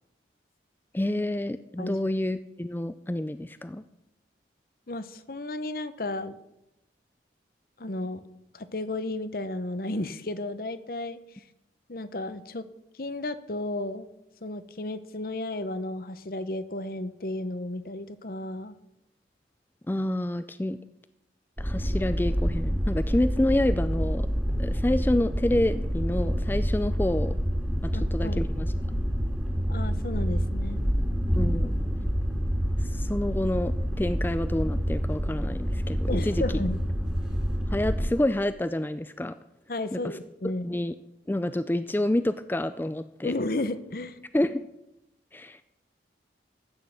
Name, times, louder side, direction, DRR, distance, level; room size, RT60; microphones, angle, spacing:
voice 1, 0.9-3.8 19.9-20.8 21.6-24.3 24.6-27.3 27.9-28.7 31.4-31.7 32.8-36.4 37.7-39.4 39.9-40.2 40.6-40.9 41.3-43.3 44.3-44.6 45.3-45.6, left 1 dB, 10° left, 12 dB, 0.4 m, -28 dB
voice 2, 4.9-6.4 7.8-8.2 8.5-11.2 11.9-12.6 13.0-14.1 14.4-18.7 27.9-28.4 29.7-30.8 36.1-36.8 39.7-40.8 43.2-44.2, left 2 dB, 55° left, 13 dB, 0.9 m, -33 dB
sound 1, 21.6-38.1, equal, 5° right, 2.2 m, -27 dB
15.0 x 6.6 x 8.7 m, 0.89 s
head